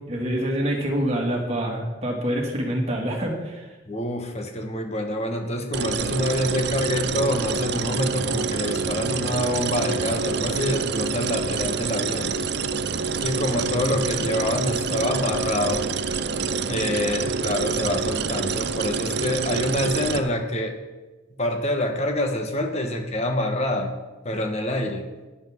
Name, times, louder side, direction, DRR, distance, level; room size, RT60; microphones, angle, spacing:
voice 1, 0.1-3.7, equal, 35° right, 0 dB, 2.1 m, -26 dB
voice 2, 3.9-12.3 13.2-15.9 16.7-20.7 21.4-23.9 24.2-25.1, left 1 dB, 35° left, 4 dB, 1.3 m, -26 dB
sound 1, 5.7-20.2, right 5 dB, 60° right, 0.5 m, -27 dB
13.5 x 10.0 x 3.7 m, 1.2 s
head